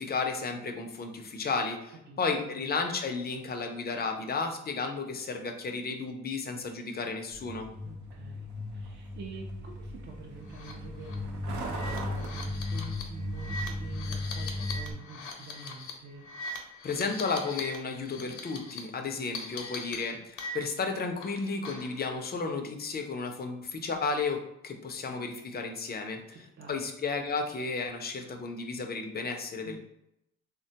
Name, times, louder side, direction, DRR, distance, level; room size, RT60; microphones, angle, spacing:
voice 1, 0.0-7.7 16.8-26.2 26.7-29.8, left 4 dB, 30° left, 5 dB, 0.5 m, -33 dB
Truck, 7.3-14.9, left 1 dB, 75° right, 0.7 m, -36 dB
voice 2, 7.8-16.3 26.3-26.8 29.6-29.8, right 3 dB, 40° right, 0 dB, 0.5 m, -47 dB
sound 1, 10.5-10.7 11.0-11.1 11.7-17.8 18.0-18.8 19.3-20.9 21.2-22.0, left 3 dB, 80° left, 0.7 m, -41 dB
3.4 x 2.1 x 2.7 m, 0.82 s
cardioid pair, 90°, 30 cm